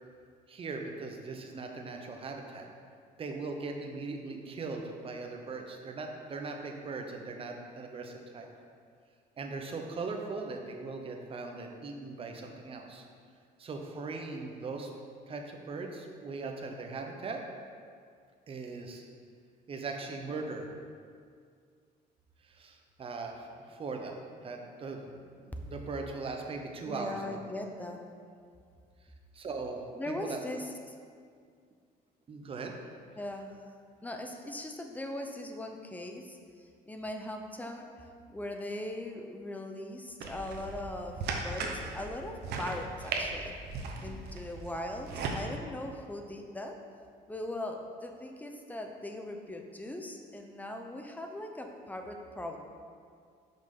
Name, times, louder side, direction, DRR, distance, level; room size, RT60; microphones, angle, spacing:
voice 1, 0.5-2.7 3.2-8.5 9.4-13.0 13.6-14.9 15.3-17.4 18.5-19.1 19.7-20.7 22.4-25.1 25.3-27.4 29.3-29.8 30.1-30.4 32.3-32.7, right 3 dB, 35° right, 2 dB, 0.7 m, -39 dB
voice 2, 26.9-28.0 29.9-31.0 33.2-33.7 34.0-43.6 44.0-46.8 47.3-52.6, left 1 dB, 10° left, 4 dB, 0.6 m, -40 dB
sound 1, 40.2-45.4, right 3 dB, 75° right, 0.8 m, -37 dB
5.7 x 5.3 x 3.7 m, 2.2 s
cardioid pair, 110°, 17 cm